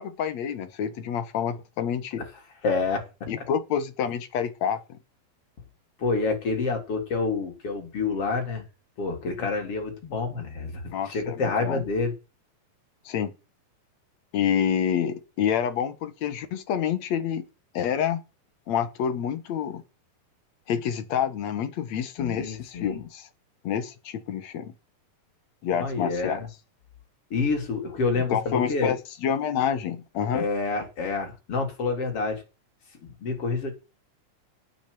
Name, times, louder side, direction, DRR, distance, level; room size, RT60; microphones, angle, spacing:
voice 1, 0.0-2.2 3.3-5.0 10.9-11.8 13.1-13.3 14.3-17.4 17.7-18.2 18.7-19.8 20.7-23.3 23.6-24.7 25.6-26.5 28.3-30.5, left 8 dB, 60° left, 2.4 m, -28 dB
voice 2, 2.6-3.1 3.4-3.5 6.0-8.6 9.0-12.1 22.2-23.0 25.8-26.4 27.3-28.9 30.3-32.4 33.0-33.7, left 4 dB, 40° left, 4.5 m, -28 dB
9.0 x 8.7 x 9.2 m
omnidirectional pair, 4.1 m